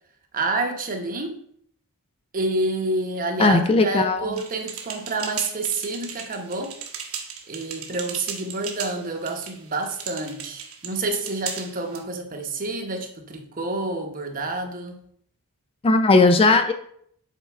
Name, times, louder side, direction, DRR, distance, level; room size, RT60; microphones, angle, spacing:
voice 1, 0.3-1.4 2.3-7.2 7.5-15.0, right 2 dB, 40° right, 4 dB, 0.9 m, -28 dB
voice 2, 3.4-4.3 15.8-16.7, left 3 dB, 25° left, 8 dB, 0.4 m, -17 dB
sound 1, 4.3-12.0, right 7 dB, 65° right, 1.0 m, -36 dB
7.3 x 4.5 x 3.4 m, 0.65 s
head